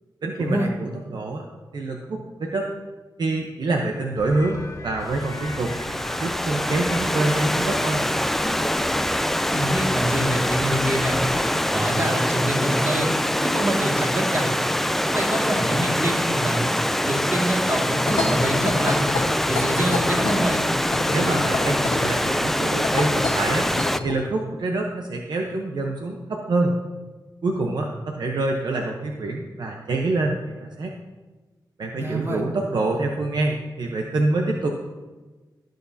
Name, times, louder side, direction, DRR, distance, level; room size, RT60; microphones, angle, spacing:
voice 1, 0.2-1.4 1.7-2.7 3.2-5.7 6.2-8.0 21.1-23.7 24.0-26.8 27.4-30.9 31.8-34.7, right 2 dB, 70° right, 1 dB, 0.9 m, -26 dB
sound 1, 4.1-11.5, left 2 dB, 45° left, 1.8 m, -39 dB
Stream / Liquid, 5.1-24.0, left 1 dB, 5° left, 0.3 m, -24 dB
voice 2, 9.5-11.2 11.7-13.1 13.4-14.5 15.1-19.0 19.5-20.7 32.0-32.4, right 1 dB, 35° right, -1 dB, 2.1 m, -26 dB
sound 2, 18.1-24.2, left 3 dB, 85° left, 1.3 m, -28 dB
17.0 x 6.5 x 2.8 m, 1.3 s
wide cardioid pair, 85°, 8 cm